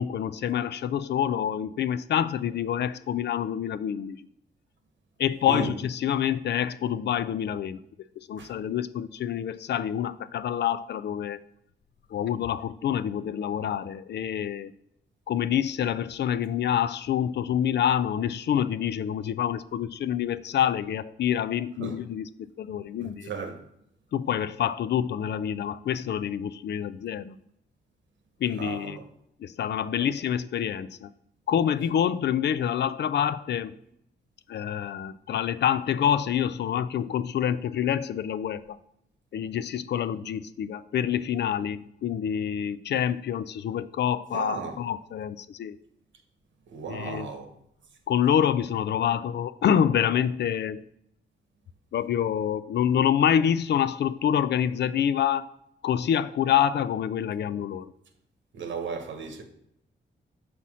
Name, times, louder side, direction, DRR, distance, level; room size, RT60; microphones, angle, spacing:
voice 1, 0.0-4.2 5.2-7.8 8.3-11.4 12.1-14.7 15.3-22.3 22.6-23.3 24.1-27.4 28.4-29.0 29.4-31.1 31.5-33.8 34.5-38.8 39.3-45.8 46.8-47.3 48.1-50.8 51.9-55.5 55.8-57.9, left 9 dB, 65° left, 0.4 m, -27 dB
voice 2, 23.0-23.6 28.6-29.0 30.0-30.1 44.3-44.8 46.7-47.5 58.5-59.4, right 5 dB, 80° right, 1.1 m, -35 dB
5.7 x 4.2 x 6.1 m
cardioid pair, 110°, 19 cm